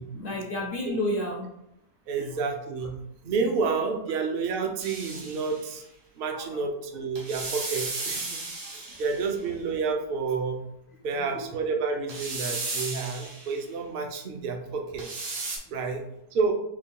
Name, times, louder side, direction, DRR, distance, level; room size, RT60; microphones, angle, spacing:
voice 1, 0.1-1.4 2.1-2.3 6.3-6.7 8.6-8.7 11.1-11.4, left 1 dB, 50° left, 0 dB, 0.6 m, -32 dB
voice 2, 2.1-3.0 3.2-5.8 6.1-8.4 8.7-10.6 11.0-15.1 15.7-16.0 16.3-16.5, right 4 dB, 55° right, 3 dB, 0.7 m, -29 dB
sound 1, 4.8-5.7 7.1-9.4 12.1-13.6 15.0-15.6, right 3 dB, 85° right, 1.6 m, -35 dB
5.1 x 2.3 x 3.6 m, 0.82 s
omnidirectional pair, 1.6 m